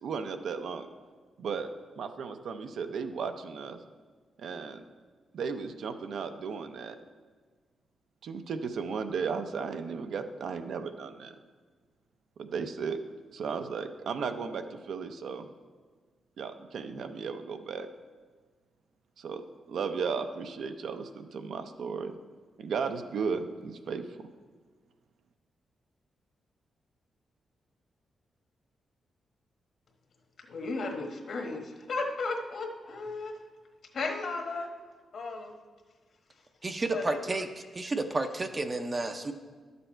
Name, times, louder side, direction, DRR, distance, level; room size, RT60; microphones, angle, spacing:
voice 1, 0.0-0.9 1.4-1.7 2.0-3.8 4.4-4.8 5.3-7.0 8.2-11.4 12.4-13.0 13.3-15.5 16.4-17.9 19.2-22.1 22.6-24.3, right 5 dB, 75° right, 8 dB, 0.6 m, -35 dB
voice 2, 30.4-33.4 33.9-34.7 35.1-35.6 36.9-37.3, left 3 dB, 55° left, 3 dB, 1.2 m, -35 dB
voice 3, 36.6-39.3, right 2 dB, 25° right, 8 dB, 0.5 m, -31 dB
11.5 x 6.9 x 4.4 m, 1.5 s
wide cardioid pair, 135°, 0 cm